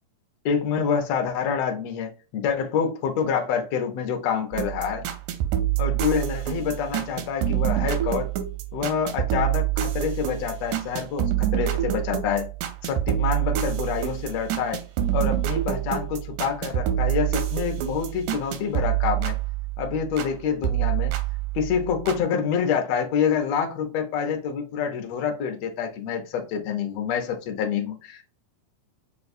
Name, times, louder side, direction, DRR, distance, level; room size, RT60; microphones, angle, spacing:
voice 1, 0.4-5.0 5.8-8.3 8.7-12.5 12.8-14.8 15.1-19.3 19.8-21.1 21.5-28.2, left 7 dB, 70° left, 1.6 m, -27 dB
sound 1, 4.5-20.3 20.6-22.2, right 12 dB, 85° right, 2.1 m, -27 dB
6.4 x 2.3 x 2.6 m
omnidirectional pair, 3.7 m